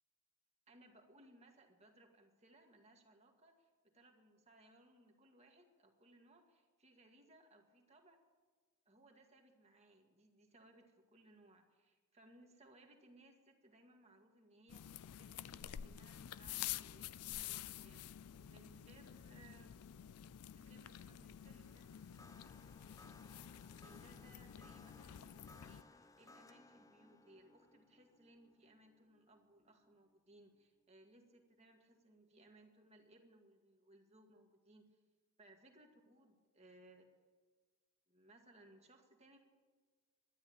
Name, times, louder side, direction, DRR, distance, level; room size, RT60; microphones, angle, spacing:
voice 1, 0.7-8.2 8.9-19.8 20.5-21.9 23.8-35.0 35.4-37.1 38.1-39.4, right 1 dB, 30° right, 3 dB, 2.0 m, -65 dB
sound 1, 14.7-25.8, left 11 dB, 75° left, 0.4 m, -49 dB
sound 2, 21.3-30.6, left 2 dB, 15° left, 0.7 m, -64 dB
12.5 x 10.5 x 8.6 m, 1.4 s
head